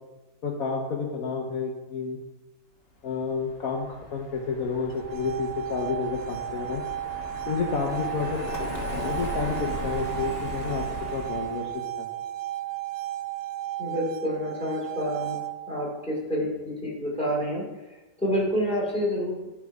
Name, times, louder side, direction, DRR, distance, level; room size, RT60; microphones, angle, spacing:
voice 1, 0.4-2.2 3.0-6.8 7.4-10.8 11.1-12.0, left 5 dB, 65° left, 1 dB, 1.2 m, -30 dB
Car passing by, 3.2-11.8, left 1 dB, 45° left, 1.2 m, -37 dB
sound 1, 4.9-15.9, right 13 dB, 65° right, 0.7 m, -34 dB
voice 2, 13.8-15.4 15.7-19.5, equal, 5° left, -5 dB, 2.3 m, -28 dB
9.7 x 3.6 x 4.7 m, 1.1 s
omnidirectional pair, 1.7 m